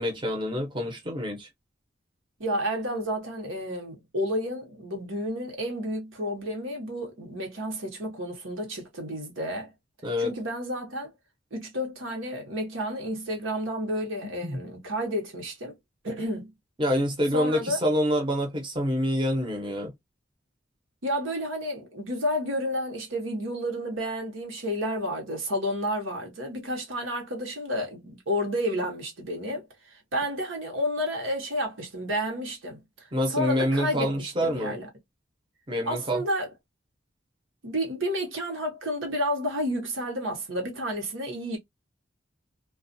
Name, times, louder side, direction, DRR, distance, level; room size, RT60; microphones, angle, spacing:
voice 1, 0.0-1.5 10.0-10.3 14.4-14.6 16.8-19.9 33.1-34.8 35.7-36.2, equal, 25° right, 0.8 m, -27 dB
voice 2, 2.4-9.7 10.2-11.1 11.5-15.8 16.0-16.5 17.3-17.8 21.0-34.9 35.9-36.5 37.6-41.6, equal, 80° right, 1.0 m, -31 dB
2.3 x 2.3 x 2.6 m
head